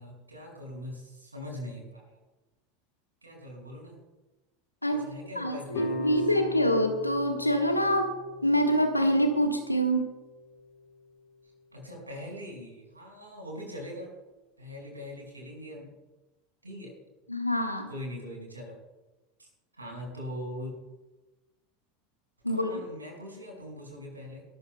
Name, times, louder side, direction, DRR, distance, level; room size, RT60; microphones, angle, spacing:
voice 1, 0.0-2.2 3.2-4.0 4.9-6.2 11.7-14.1 14.6-15.9 16.6-16.9 17.9-18.8 19.4-19.5 19.7-20.8 22.5-24.4, left 1 dB, 85° right, -1 dB, 5.2 m, -41 dB
voice 2, 5.4-8.1 8.4-10.1 17.3-17.9 22.4-22.7, equal, 90° left, 5 dB, 1.4 m, -25 dB
sound 1, 5.7-10.8, left 3 dB, 55° left, 2.4 m, -39 dB
23.0 x 13.5 x 2.2 m, 1.1 s
figure-of-eight pair, 75°, 0 cm